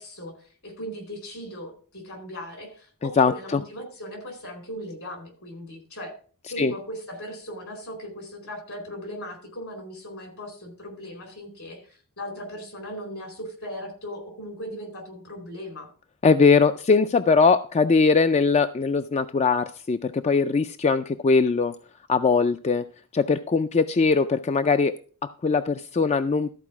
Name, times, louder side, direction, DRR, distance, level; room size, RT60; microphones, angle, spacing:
voice 1, 0.0-6.1 6.5-15.9, equal, 70° left, 4.2 m, -38 dB
voice 2, 3.0-3.6 6.6-6.7 16.2-21.7 22.1-22.9 23.1-24.9 25.2-26.5, left 4 dB, 30° left, 0.4 m, -21 dB
13.5 x 4.7 x 5.9 m
head